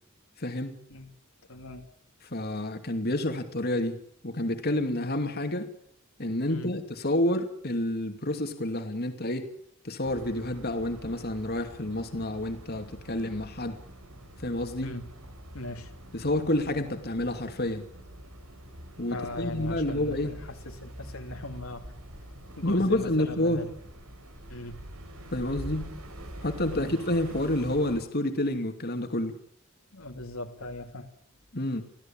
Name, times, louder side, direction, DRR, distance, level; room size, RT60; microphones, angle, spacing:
voice 1, 0.4-0.7 2.3-4.0 4.2-5.7 6.2-9.5 9.8-13.8 14.4-14.9 16.1-17.9 19.0-20.3 22.6-23.6 25.3-25.9 26.4-29.3 31.5-31.8, left 1 dB, 45° left, 6 dB, 2.6 m, -29 dB
voice 2, 1.5-1.9 6.5-6.7 14.8-15.1 15.5-15.9 19.1-21.8 22.6-23.7 24.5-24.8 26.7-27.0 29.9-31.1, left 1 dB, 70° left, 4 dB, 2.6 m, -39 dB
Hillcrest Afternoon, 10.0-28.0, right 1 dB, 80° right, 5.2 m, -45 dB
26.5 x 16.5 x 8.9 m, 0.68 s
head